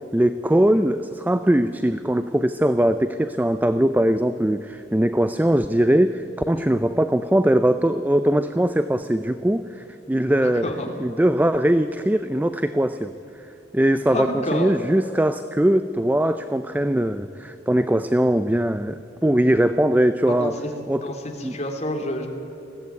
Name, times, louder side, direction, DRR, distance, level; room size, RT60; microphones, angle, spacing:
voice 1, 0.1-10.7 11.0-13.1 13.7-20.6 20.9-21.0 21.4-21.5, right 1 dB, 10° right, 11 dB, 0.4 m, -21 dB
voice 2, 10.4-10.9 14.1-14.7 20.3-20.5 21.0-22.3, left 1 dB, 40° left, 2 dB, 2.8 m, -28 dB
21.0 x 15.5 x 9.5 m, 2.9 s
head